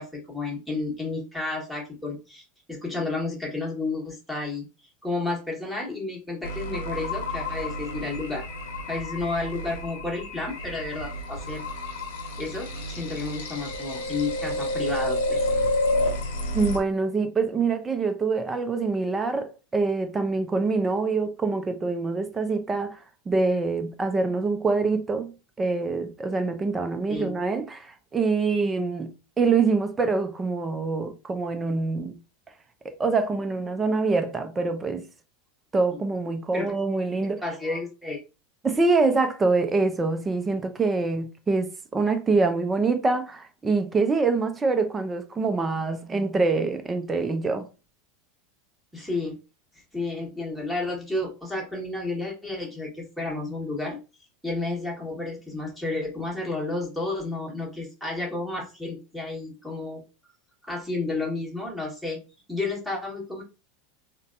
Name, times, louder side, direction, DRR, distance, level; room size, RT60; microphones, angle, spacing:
voice 1, 0.0-2.4 2.7-4.6 5.0-8.4 8.9-11.6 12.4-15.5 27.1-27.3 36.5-36.7 37.4-38.2 48.9-49.4 49.9-54.0 54.4-60.0 60.6-62.2 62.5-63.4, left 3 dB, ahead, 1.4 m, -31 dB
sound 1, 6.4-16.8, left 1 dB, 65° left, 0.7 m, -30 dB
voice 2, 16.5-23.0 23.3-32.2 33.0-35.1 35.7-37.4 38.6-47.7, right 4 dB, 20° right, 0.6 m, -25 dB
3.9 x 2.2 x 2.5 m
figure-of-eight pair, 80°, 0 cm